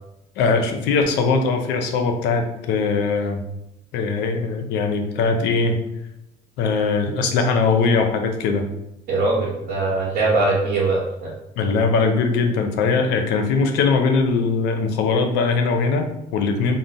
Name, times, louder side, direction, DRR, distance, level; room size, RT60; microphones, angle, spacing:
voice 1, 0.4-3.4 3.9-5.8 6.6-8.7 11.6-16.8, left 4 dB, 90° left, 5 dB, 0.5 m, -21 dB
voice 2, 9.1-11.3, right 3 dB, 70° right, -6 dB, 0.9 m, -21 dB
2.4 x 2.0 x 3.8 m, 0.88 s
cardioid pair, 110°, 17 cm